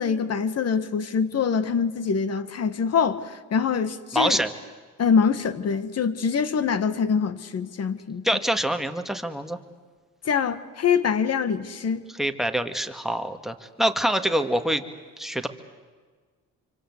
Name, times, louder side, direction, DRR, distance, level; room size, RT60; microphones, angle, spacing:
voice 1, 0.0-4.4 5.0-8.2 10.3-12.0, left 6 dB, 50° left, 1.8 m, -24 dB
voice 2, 4.1-4.5 8.2-9.6 12.2-14.8 15.2-15.5, equal, ahead, 2.0 m, -25 dB
26.5 x 25.0 x 8.2 m
cardioid pair, 95°, 31 cm